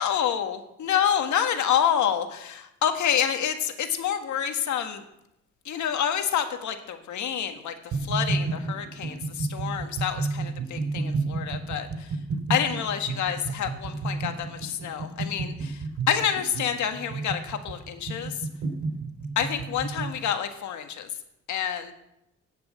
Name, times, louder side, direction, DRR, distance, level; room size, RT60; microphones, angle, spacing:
voice 1, 0.0-5.0 5.7-7.7 8.0-12.1 12.5-15.8 16.1-18.3 19.4-21.1 21.5-21.9, left 9 dB, 70° left, 6 dB, 1.7 m, -28 dB
sound 1, 7.9-20.2, right 3 dB, 75° right, 4.6 m, -31 dB
18.0 x 6.0 x 7.6 m, 0.83 s
cardioid pair, 90°, 30 cm